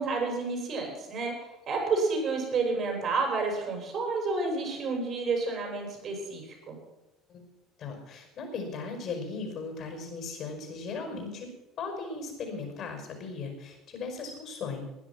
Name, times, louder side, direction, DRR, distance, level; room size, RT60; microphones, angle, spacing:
voice 1, 0.0-1.3 1.7-6.8, right 3 dB, 45° right, 1 dB, 6.9 m, -30 dB
voice 2, 7.8-11.5 11.8-14.9, left 4 dB, 50° left, 5 dB, 5.3 m, -37 dB
18.5 x 10.0 x 6.1 m, 0.95 s
hypercardioid pair, 65°, 0 cm